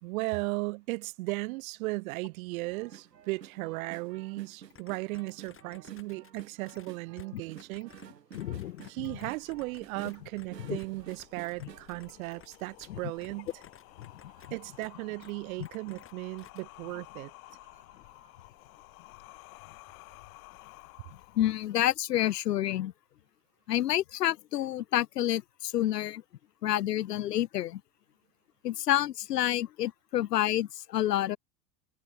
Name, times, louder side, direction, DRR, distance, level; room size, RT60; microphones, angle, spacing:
voice 1, 0.0-7.9 8.9-13.5 14.5-17.3, right 23 dB, 55° right, 2.7 m, -36 dB
sound 1, 2.5-12.9 13.3-15.7 16.3-16.4 16.6-16.9 17.5-18.4 18.8-18.9, right 9 dB, 75° right, 5.5 m, -52 dB
sound 2, 4.7-8.1 8.3-10.5 10.8-12.9 13.2-14.5 14.8-14.9 15.2-15.3 15.6-16.1 16.4-16.6, left 8 dB, 25° left, 5.2 m, -55 dB
voice 2, 8.3-8.9 10.7-10.8 12.9-13.0 15.6-15.7 21.4-22.9 23.7-26.2 26.6-27.8 28.6-31.4, left 13 dB, 75° left, 1.0 m, -29 dB
sound 3, 9.0-22.0, left 22 dB, 55° left, 3.7 m, -54 dB
figure-of-eight pair, 85°, 49 cm